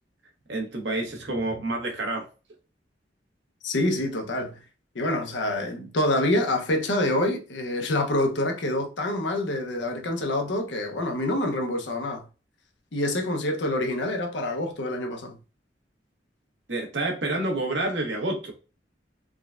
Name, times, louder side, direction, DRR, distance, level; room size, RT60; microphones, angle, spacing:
voice 1, 0.5-2.3 16.7-18.5, right 2 dB, 80° right, 1.0 m, -28 dB
voice 2, 3.6-4.6 4.9-12.3 12.9-15.4, left 1 dB, 90° left, 0.7 m, -26 dB
3.7 x 2.2 x 2.4 m
head